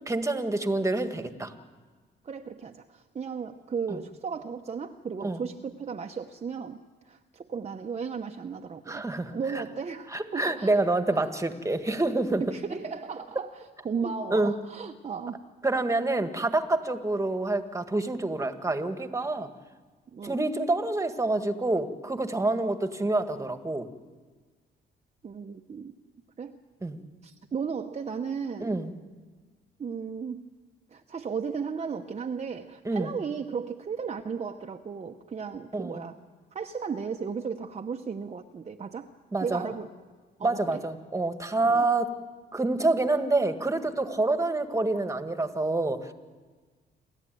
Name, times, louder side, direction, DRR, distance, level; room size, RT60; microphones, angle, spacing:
voice 1, 0.1-1.5 3.9-4.0 5.2-5.4 8.9-9.6 10.1-12.4 14.0-14.5 15.6-19.5 20.2-23.9 26.8-27.0 28.6-28.9 32.9-33.1 35.7-35.9 39.3-39.7 40.4-42.1 42.5-46.1, right 2 dB, 15° right, 9 dB, 1.7 m, -27 dB
voice 2, 2.2-6.8 7.0-9.0 9.3-10.7 11.1-11.2 12.4-15.4 20.1-20.4 25.2-25.9 26.4-26.6 27.2-28.8 29.8-30.4 30.9-36.2 36.5-39.1 39.4-39.9 40.4-40.8 41.6-41.9, right 6 dB, 35° right, 4 dB, 1.0 m, -35 dB
28.0 x 13.5 x 9.3 m, 1.4 s
cardioid pair, 90°, 20 cm